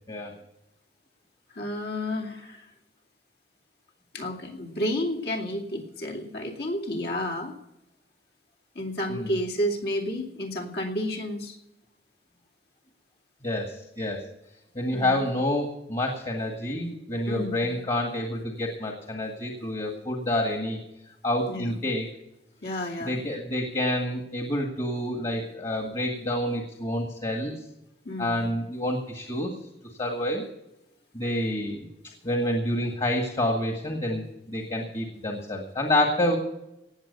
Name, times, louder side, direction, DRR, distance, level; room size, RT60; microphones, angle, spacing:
voice 1, 1.5-2.7 4.1-7.5 8.7-11.5 14.9-15.2 17.3-17.6 21.5-21.8 22.6-23.2 28.0-28.5, left 1 dB, 60° left, 1 dB, 2.6 m, -31 dB
voice 2, 13.4-14.2 14.8-20.8 21.2-22.1 23.1-27.5 28.2-29.5 30.0-30.4 31.1-31.9 32.2-36.4, left 1 dB, 30° left, 2 dB, 1.9 m, -28 dB
18.0 x 7.8 x 6.8 m, 0.89 s
head